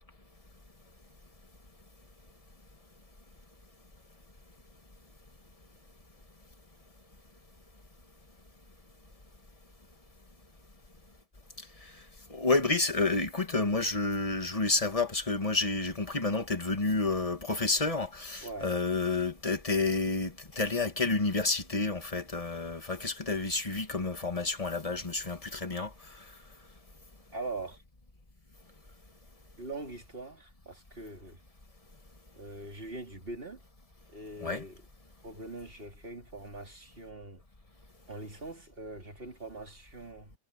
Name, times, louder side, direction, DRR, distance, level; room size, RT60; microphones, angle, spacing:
voice 1, 12.3-25.9 34.4-34.6, left 3 dB, 20° left, 1.8 m, -30 dB
voice 2, 18.4-18.7 27.3-27.8 29.6-31.4 32.4-33.6 34.1-34.8 35.2-37.4 38.1-40.3, right 2 dB, 35° right, 3.6 m, -42 dB
omnidirectional pair, 1.7 m